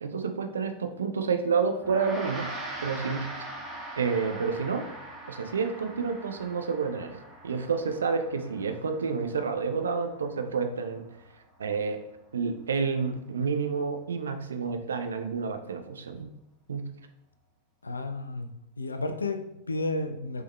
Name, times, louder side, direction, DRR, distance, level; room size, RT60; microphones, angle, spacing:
voice 1, 0.0-2.5 2.8-3.3 4.0-4.8 5.3-7.2 7.4-11.0 11.6-12.0 12.3-16.3 16.7-16.9, right 5 dB, 70° right, 7 dB, 0.5 m, -29 dB
Gong, 1.8-11.4, right 1 dB, 15° right, 1.2 m, -42 dB
voice 2, 17.8-18.5 18.8-20.4, left 2 dB, 80° left, 8 dB, 0.4 m, -32 dB
5.7 x 3.6 x 2.2 m, 0.84 s
figure-of-eight pair, 90°, 0 cm